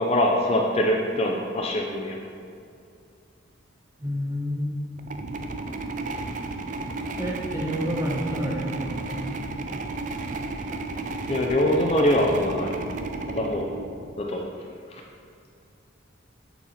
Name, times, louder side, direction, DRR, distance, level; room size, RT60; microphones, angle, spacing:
voice 1, 0.0-2.2 11.3-12.7 13.3-13.7 14.2-14.6 14.9-15.0, left 1 dB, 30° left, 0 dB, 0.5 m, -23 dB
voice 2, 4.0-4.8 7.2-9.8, equal, 15° right, -3 dB, 0.9 m, -30 dB
sound 1, 5.0-14.3, right 3 dB, 40° right, 0.4 m, -33 dB
8.1 x 4.2 x 4.2 m, 2.4 s
head